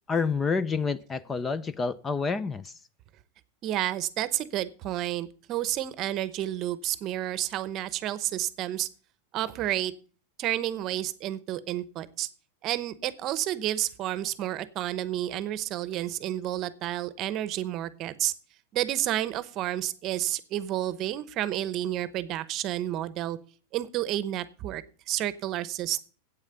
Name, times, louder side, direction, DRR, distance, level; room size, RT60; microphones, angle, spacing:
voice 1, 0.1-2.7, left 5 dB, 15° left, 0.5 m, -28 dB
voice 2, 3.6-8.9 9.3-9.9 10.4-12.3 12.6-18.3 18.7-23.4 23.7-26.0, right 13 dB, 35° right, 0.8 m, -30 dB
8.9 x 8.3 x 6.9 m
supercardioid pair, 145°, 0 cm